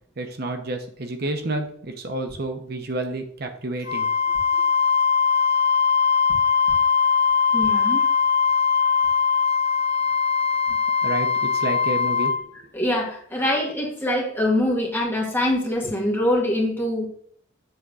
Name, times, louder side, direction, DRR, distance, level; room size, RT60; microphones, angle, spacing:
voice 1, 0.2-4.1 11.0-12.3, right 2 dB, 55° right, 5 dB, 0.9 m, -30 dB
Wind instrument woodwind instrument, 3.8-12.4, left 6 dB, 25° right, 1.5 m, -21 dB
voice 2, 7.5-8.0 12.7-17.1, left 1 dB, 10° left, -2 dB, 1.9 m, -24 dB
7.8 x 3.6 x 6.3 m, 0.62 s
head